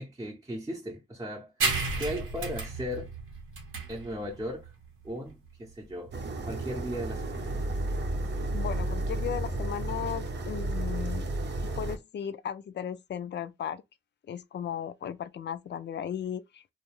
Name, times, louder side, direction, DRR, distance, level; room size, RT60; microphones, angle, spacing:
voice 1, 0.0-3.1 3.9-4.7 5.0-6.1 6.4-7.5 7.8-7.9, equal, 15° right, 0.7 m, -37 dB
sound 1, 1.6-8.7, right 4 dB, 90° right, 0.9 m, -35 dB
sound 2, 6.1-12.0, right 1 dB, 55° right, 0.7 m, -32 dB
voice 2, 8.5-11.3 11.8-13.8 14.3-16.7, left 9 dB, 55° left, 0.4 m, -36 dB
2.3 x 2.2 x 3.1 m
cardioid pair, 60°, 21 cm